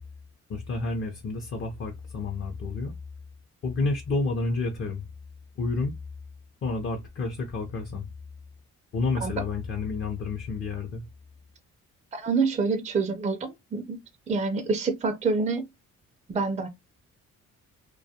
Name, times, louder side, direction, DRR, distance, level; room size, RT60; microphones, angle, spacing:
voice 1, 0.5-2.9 3.6-5.0 5.6-5.9 6.6-8.1 8.9-11.0, left 3 dB, 45° left, 0.6 m, -30 dB
voice 2, 12.1-14.0 14.3-15.7 16.3-16.7, right 4 dB, 25° right, 0.4 m, -27 dB
2.3 x 2.1 x 2.7 m
cardioid pair, 90°, 30 cm